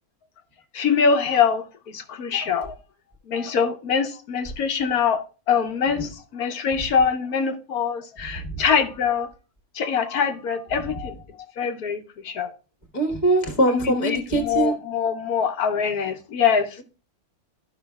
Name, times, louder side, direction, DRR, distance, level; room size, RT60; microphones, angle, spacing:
voice 1, 0.7-2.7 3.3-5.2 5.5-9.3 9.7-11.2 11.6-12.5 13.7-16.7, left 6 dB, 80° left, 1.4 m, -23 dB
voice 2, 12.9-14.7, right 2 dB, 25° left, 1.4 m, -22 dB
13.0 x 5.6 x 2.3 m
omnidirectional pair, 1.6 m